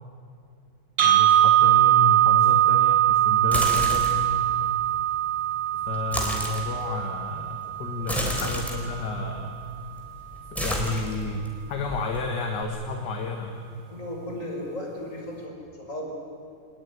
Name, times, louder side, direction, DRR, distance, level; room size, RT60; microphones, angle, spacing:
voice 1, 1.0-4.1 5.7-9.6 10.5-13.5, left 3 dB, 55° left, 4 dB, 2.1 m, -31 dB
sound 1, 1.0-9.0, right 12 dB, 65° right, 3.1 m, -22 dB
sound 2, 3.4-4.3 5.9-6.7 8.0-8.8 9.6-10.0 10.2-11.5 11.9-12.6, equal, ahead, 4.0 m, -30 dB
voice 2, 13.9-16.1, left 1 dB, 35° left, 0 dB, 5.9 m, -35 dB
25.0 x 20.0 x 9.5 m, 2.4 s
omnidirectional pair, 2.3 m